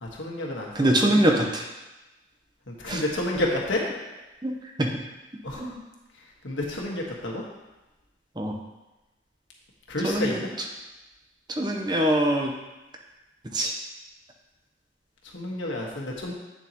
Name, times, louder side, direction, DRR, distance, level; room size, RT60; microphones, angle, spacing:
voice 1, 0.0-0.9 2.7-3.8 5.4-5.6 6.4-7.4 9.9-10.5 15.3-16.3, left 1 dB, 90° left, -2 dB, 1.6 m, -30 dB
voice 2, 0.7-1.7 2.9-3.0 4.4-4.5 4.8-4.9 5.6-5.8 8.4-8.6 10.0-10.4 11.6-12.5 13.5-13.7, right 1 dB, 25° right, 1 dB, 0.8 m, -23 dB
8.6 x 7.2 x 3.0 m, 1.0 s
head